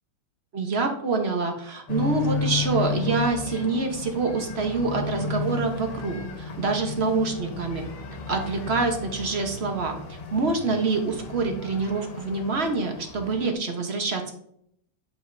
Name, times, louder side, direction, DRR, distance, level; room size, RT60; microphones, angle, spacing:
voice 1, 0.5-7.8 8.3-14.3, right 3 dB, 40° right, 3 dB, 1.0 m, -26 dB
sound 1, 1.9-13.5, left 4 dB, 80° left, 2.0 m, -33 dB
9.0 x 7.2 x 2.7 m, 0.68 s
omnidirectional pair, 2.4 m